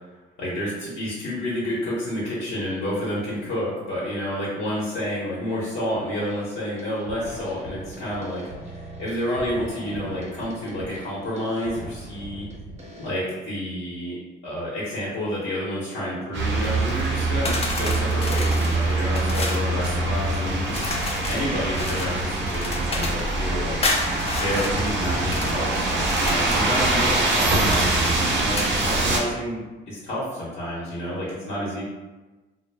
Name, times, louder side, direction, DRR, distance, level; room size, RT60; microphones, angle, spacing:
voice 1, 0.4-8.4 8.7-12.4 13.0-14.2 14.4-20.8 21.3-23.8 24.3-29.6 29.9-31.8, equal, 70° left, -8 dB, 0.9 m, -29 dB
sound 1, 6.2-6.5 6.8-13.1, right 1 dB, 35° right, 0.9 m, -41 dB
sound 2, 16.3-29.2, right 2 dB, 65° right, 0.6 m, -24 dB
sound 3, 17.4-19.7 20.7-23.3 23.8-25.6 26.0-26.7 27.2-28.7, left 3 dB, 30° left, 0.4 m, -31 dB
2.1 x 2.0 x 3.2 m, 1.2 s
cardioid pair, 90°, 20 cm